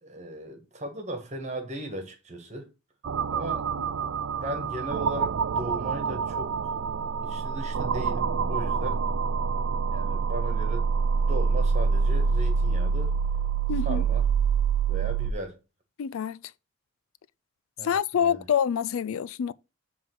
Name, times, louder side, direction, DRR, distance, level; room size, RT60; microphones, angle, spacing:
voice 1, 0.0-2.7 3.3-3.7 4.3-6.7 7.2-9.0 9.9-10.9 11.2-13.2 13.8-14.3 14.9-15.6 17.8-18.4, right 1 dB, 30° right, 1.5 m, -37 dB
sound 1, 3.0-15.3, right 5 dB, 60° right, 0.4 m, -26 dB
voice 2, 13.7-14.0 16.0-16.4 17.8-19.5, left 8 dB, 70° left, 0.3 m, -26 dB
7.4 x 3.5 x 6.4 m
head